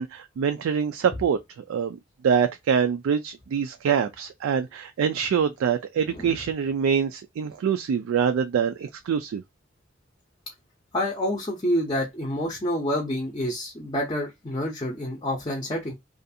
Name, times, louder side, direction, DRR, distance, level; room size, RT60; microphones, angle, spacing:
voice 1, 0.0-1.4 1.7-2.0 2.2-9.4, right 7 dB, 90° right, 0.3 m, -25 dB
voice 2, 6.1-6.4 10.9-15.9, left 1 dB, 25° left, 0.5 m, -28 dB
2.5 x 2.3 x 2.6 m
head